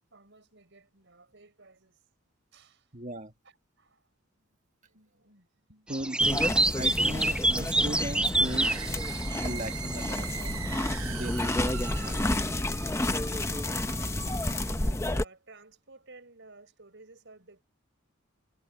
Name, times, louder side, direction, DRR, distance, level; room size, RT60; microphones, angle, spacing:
voice 1, 0.1-2.0 2.5-2.9 3.4-6.1 6.9-7.2 10.4-10.5 13.4-14.3 14.6-17.6, right 3 dB, 60° right, 6.4 m, -55 dB
voice 2, 2.9-3.3 5.9-8.9 9.4-12.4, right 1 dB, 35° right, 1.6 m, -38 dB
sound 1, 5.9-10.2 11.8-12.3, right 2 dB, 5° right, 0.3 m, -27 dB
sound 2, 6.2-15.2, left 1 dB, 15° left, 0.8 m, -30 dB
sound 3, 8.3-14.9, right 10 dB, 85° right, 1.0 m, -42 dB
head